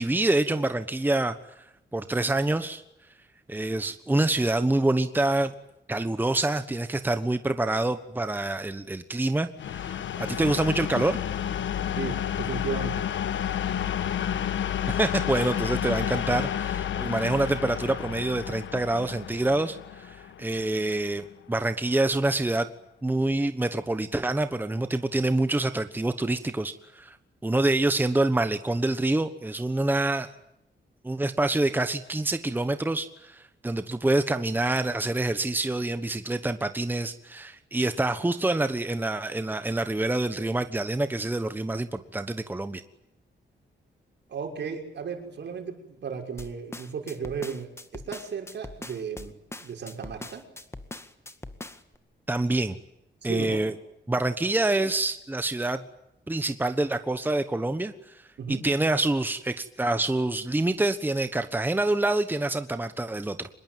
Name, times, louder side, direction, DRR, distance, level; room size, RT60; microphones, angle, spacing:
voice 1, 0.0-1.4 1.9-2.8 3.5-5.5 5.9-11.2 14.9-22.7 23.0-27.2 27.4-30.3 31.0-42.8 52.3-52.7 53.2-53.7 54.1-55.8 56.3-58.2 58.5-63.5, right 2 dB, 10° right, 10 dB, 1.2 m, -26 dB
sound 1, 9.6-21.2, left 9 dB, 85° left, 1.5 m, -30 dB
voice 2, 12.0-13.1 44.3-49.3 49.6-50.4 53.2-53.6 58.4-58.6, right 6 dB, 70° right, 3 dB, 6.1 m, -35 dB
sound 2, 46.4-52.0, left 2 dB, 15° left, 1.9 m, -41 dB
25.5 x 22.0 x 9.3 m, 0.83 s
wide cardioid pair, 135°, 19 cm